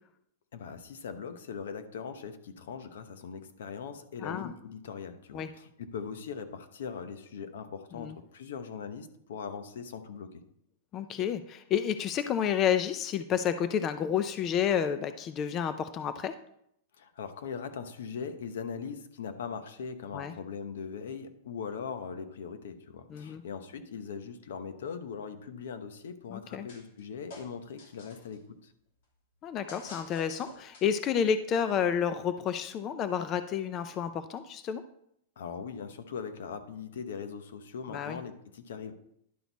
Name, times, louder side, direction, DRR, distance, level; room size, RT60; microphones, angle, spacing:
voice 1, 0.5-10.4 17.0-28.7 35.4-39.0, left 6 dB, 85° left, 9 dB, 1.0 m, -40 dB
voice 2, 10.9-16.3 20.1-20.3 23.1-23.4 26.3-26.7 29.4-34.8 37.9-38.2, left 8 dB, 25° left, 11 dB, 0.4 m, -30 dB
sound 1, 26.7-27.0 27.3-28.4 29.7-31.1, left 2 dB, 65° left, 2.7 m, -49 dB
11.0 x 6.2 x 4.1 m, 0.73 s
supercardioid pair, 165°, 0 cm